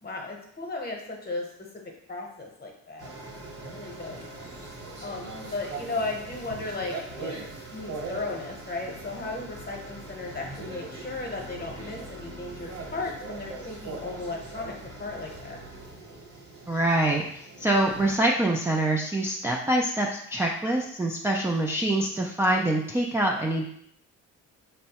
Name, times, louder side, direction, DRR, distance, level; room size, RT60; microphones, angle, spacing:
voice 1, 0.0-1.8 2.1-3.2 3.7-4.3 5.0-7.3 7.7-15.6, left 2 dB, 30° left, 0 dB, 0.9 m, -35 dB
sound 1, 3.0-18.1, right 2 dB, 55° right, 1.1 m, -41 dB
voice 2, 16.7-23.7, right 1 dB, 10° right, -2 dB, 0.3 m, -25 dB
4.4 x 2.1 x 2.8 m, 0.70 s
cardioid pair, 90°, 30 cm